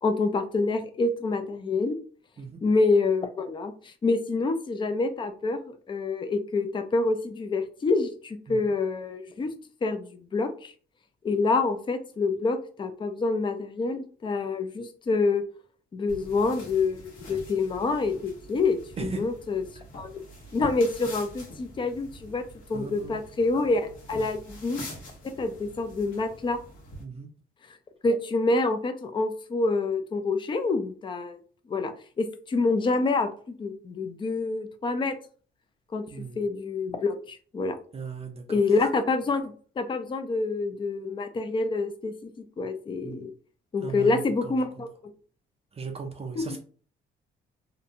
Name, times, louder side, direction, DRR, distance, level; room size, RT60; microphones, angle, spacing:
voice 1, 0.0-2.0 2.6-9.5 9.8-10.7 11.2-15.4 15.9-19.6 19.9-20.1 20.5-22.4 22.7-24.8 25.2-26.6 28.0-31.4 31.7-35.2 35.9-36.0 36.4-37.8 38.5-42.3 42.6-43.3 43.7-44.9, left 3 dB, 25° left, 8 dB, 0.4 m, -27 dB
sound 1, 16.1-27.0, equal, 80° left, 1.1 m, -45 dB
voice 2, 22.7-23.1 27.0-27.3 36.1-36.4 37.9-38.4 43.0-43.3 43.8-44.8 45.7-46.6, right 5 dB, 30° right, 3 dB, 0.5 m, -37 dB
2.5 x 2.2 x 2.7 m, 0.42 s
cardioid pair, 90°, 20 cm